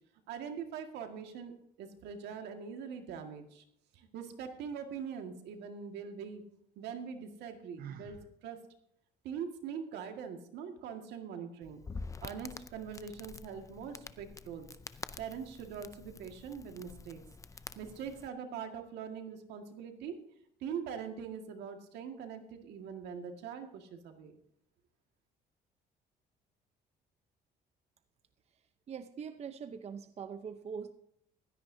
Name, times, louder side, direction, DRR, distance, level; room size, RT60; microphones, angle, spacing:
voice 1, 0.3-1.5 1.8-3.6 3.9-6.4 6.8-8.6 9.2-11.8 12.2-14.7 14.9-17.2 17.8-20.2 20.6-24.3, right 7 dB, 80° right, 5 dB, 1.9 m, -42 dB
Sigh, 7.8-8.3, right 8 dB, 65° right, 1.0 m, -46 dB
Crackle, 11.6-18.3, left 4 dB, 20° left, 0.5 m, -47 dB
voice 2, 28.9-30.9, right 6 dB, 40° right, 9 dB, 0.7 m, -42 dB
16.0 x 13.0 x 2.7 m, 0.71 s
cardioid pair, 110°, 17 cm